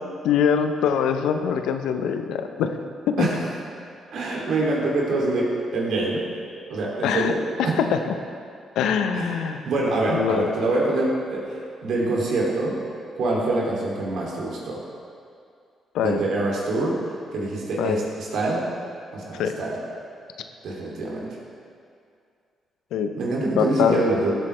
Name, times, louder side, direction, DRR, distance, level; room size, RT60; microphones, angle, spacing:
voice 1, 0.2-2.7 3.1-3.3 7.0-7.3 7.9-8.0 8.8-9.6 10.1-10.5 15.9-16.2 17.8-18.0 19.4-19.6 22.9-23.1 23.6-24.0, left 7 dB, 75° left, 7 dB, 0.7 m, -23 dB
voice 2, 4.1-6.2 6.7-7.8 9.1-12.8 13.2-14.8 16.0-18.7 19.1-19.8 20.6-21.4 23.2-24.3, right 2 dB, 70° right, -3 dB, 2.7 m, -25 dB
16.5 x 8.3 x 3.3 m, 2.3 s
hypercardioid pair, 50°, 0 cm